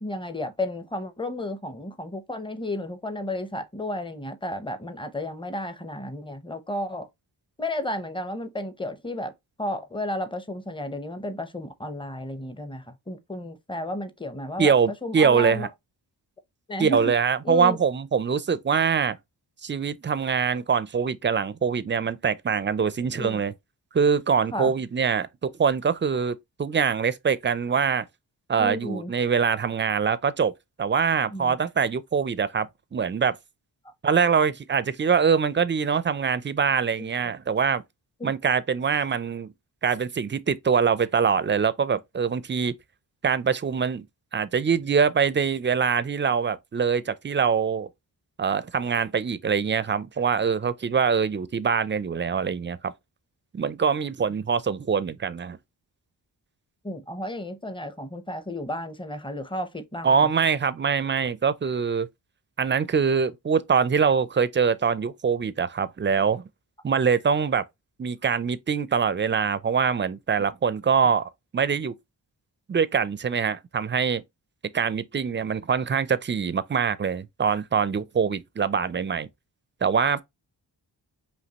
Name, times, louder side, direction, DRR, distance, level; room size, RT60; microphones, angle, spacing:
voice 1, 0.0-7.1 7.6-9.3 9.6-15.7 16.7-17.1 17.4-17.8 23.1-23.4 24.5-24.7 28.6-29.1 31.3-31.6 33.8-33.9 37.0-37.1 38.2-38.3 56.8-60.3, left 1 dB, 10° left, 0.7 m, -33 dB
voice 2, 14.6-15.7 16.8-19.2 19.6-23.5 23.9-28.0 28.5-30.5 30.8-33.4 34.0-37.8 38.2-39.5 39.8-42.7 43.2-44.1 44.3-47.9 48.4-52.9 53.5-55.6 60.0-62.1 62.6-66.4 66.8-67.6 68.0-71.2 71.5-71.9 72.7-74.2 74.7-79.3 79.8-80.2, right 6 dB, 25° right, 0.4 m, -24 dB
5.2 x 2.7 x 2.8 m
cardioid pair, 70°, 43 cm